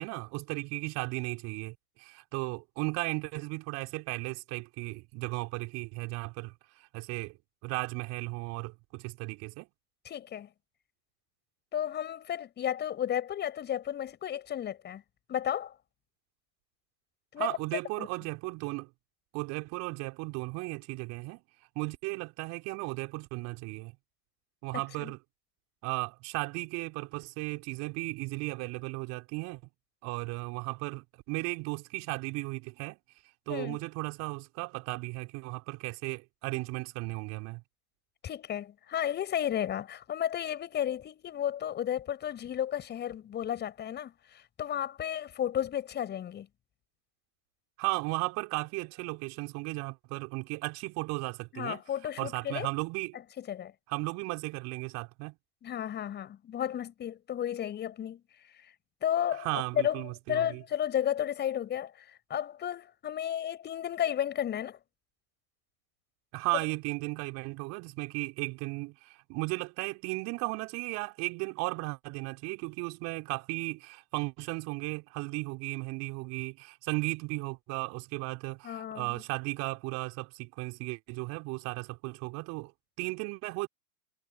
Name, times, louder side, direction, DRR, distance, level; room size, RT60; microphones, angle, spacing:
voice 1, 0.0-7.4 7.6-9.7 17.4-18.9 19.3-21.4 21.7-23.9 24.6-25.2 25.8-29.6 30.0-33.0 33.5-37.6 47.8-51.8 52.2-53.2 53.9-55.4 59.4-60.6 66.3-82.7 83.0-83.7, right 25 dB, 35° right, 4.8 m, -35 dB
voice 2, 10.0-10.5 11.7-15.0 15.3-15.8 17.3-17.6 18.0-18.1 24.7-25.1 33.5-33.8 38.2-46.5 51.5-52.7 53.4-53.7 55.6-58.2 59.0-64.8 78.6-79.1, left 10 dB, 25° left, 7.0 m, -33 dB
hypercardioid pair, 110°, 44 cm